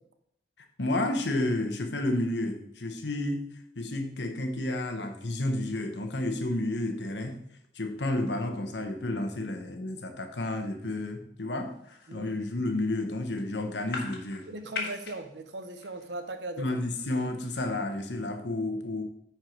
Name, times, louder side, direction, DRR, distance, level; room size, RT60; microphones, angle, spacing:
voice 1, 0.8-3.5 3.8-7.4 7.7-14.5 16.6-19.0, left 1 dB, 85° left, 5 dB, 1.1 m, -31 dB
sound 1, 11.7-12.4 12.7-13.0 13.3-15.2 15.5-16.4 16.7-17.1, left 4 dB, 60° left, 1.7 m, -41 dB
voice 2, 14.5-16.7, right 2 dB, 85° right, 8 dB, 0.8 m, -38 dB
9.9 x 4.6 x 4.6 m, 0.72 s
head